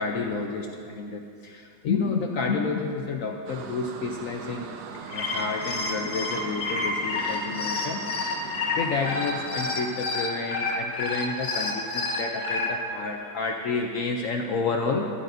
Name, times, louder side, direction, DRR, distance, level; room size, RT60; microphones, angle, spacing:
voice 1, 0.0-4.8 5.1-8.0 8.4-15.1, left 4 dB, 65° left, 2 dB, 0.8 m, -30 dB
sound 1, 3.5-10.0, right 6 dB, 85° right, 1.4 m, -40 dB
sound 2, 4.9-12.7, left 3 dB, 45° left, 1.4 m, -29 dB
15.0 x 11.5 x 2.6 m, 2.6 s
omnidirectional pair, 1.9 m